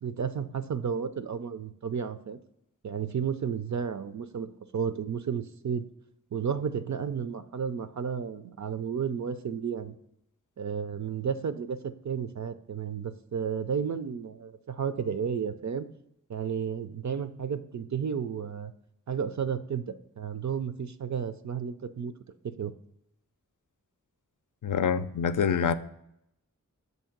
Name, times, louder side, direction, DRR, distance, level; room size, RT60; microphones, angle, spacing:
voice 1, 0.0-2.4 2.8-5.9 6.3-9.9 10.6-15.9 16.3-18.7 19.1-19.8 20.2-22.1 22.4-22.7, right 7 dB, 60° right, 0.4 m, -32 dB
voice 2, 24.6-25.7, left 7 dB, 65° left, 0.4 m, -26 dB
6.9 x 2.7 x 5.8 m
wide cardioid pair, 45°, 33 cm